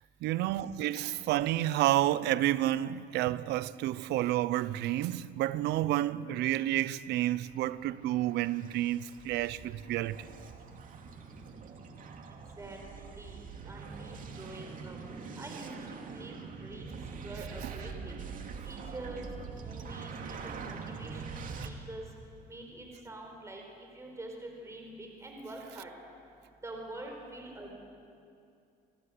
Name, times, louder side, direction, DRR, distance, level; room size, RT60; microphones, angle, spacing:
voice 1, 0.2-10.3 17.6-17.7, right 14 dB, 80° right, 0.8 m, -30 dB
sound 1, 7.3-21.7, right 5 dB, 55° right, 2.5 m, -44 dB
voice 2, 13.1-15.0 15.4-17.0 17.2-18.2 18.6-19.2 19.6-22.0 22.5-25.9 26.6-27.7, right 2 dB, 15° right, 4.8 m, -46 dB
28.0 x 19.5 x 8.0 m
cardioid pair, 110°, 17 cm